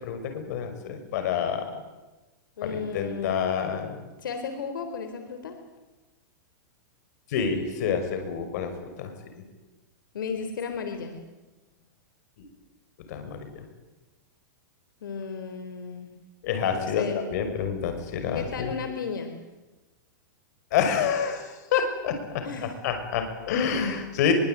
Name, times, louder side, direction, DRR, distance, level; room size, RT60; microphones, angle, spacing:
voice 1, 0.0-1.7 2.6-4.0 7.3-8.7 9.0-9.1 13.1-13.6 16.4-18.7 20.7-22.4 22.8-24.3, left 7 dB, 55° left, 7 dB, 6.0 m, -28 dB
voice 2, 2.6-3.9 4.2-5.6 10.1-11.2 15.0-16.1 16.7-17.2 18.3-19.3 22.4-22.8, left 5 dB, 90° left, 7 dB, 3.8 m, -34 dB
23.5 x 23.0 x 9.3 m, 1.1 s
supercardioid pair, 155°, 11 cm